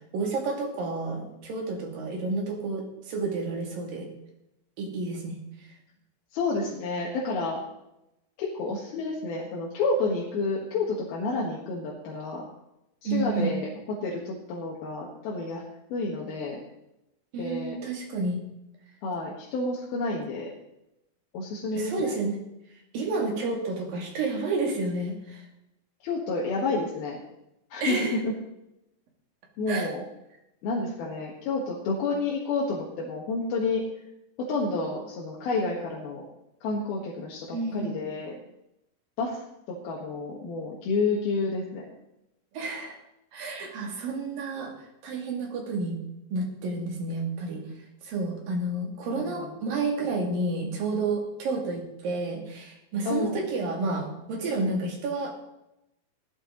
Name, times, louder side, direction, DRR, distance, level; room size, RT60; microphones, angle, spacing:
voice 1, 0.1-4.1 4.8-5.4 13.0-13.6 17.3-18.4 21.8-22.4 22.9-25.4 27.8-28.2 29.7-29.9 37.5-38.0 42.5-43.0 43.3-44.7 45.0-46.0 46.3-47.7 48.0-55.3, right 3 dB, 70° right, 1 dB, 4.1 m, -30 dB
voice 2, 6.3-7.6 8.4-12.5 13.0-15.6 15.9-16.6 17.4-17.8 19.0-20.5 21.3-22.2 26.0-27.2 27.7-28.3 29.6-30.0 30.6-33.9 34.4-36.3 36.6-38.3 39.2-39.4 39.7-41.9 49.1-49.5 53.0-53.5, left 3 dB, 85° left, -3 dB, 3.5 m, -30 dB
16.5 x 11.5 x 3.9 m, 0.87 s
omnidirectional pair, 4.2 m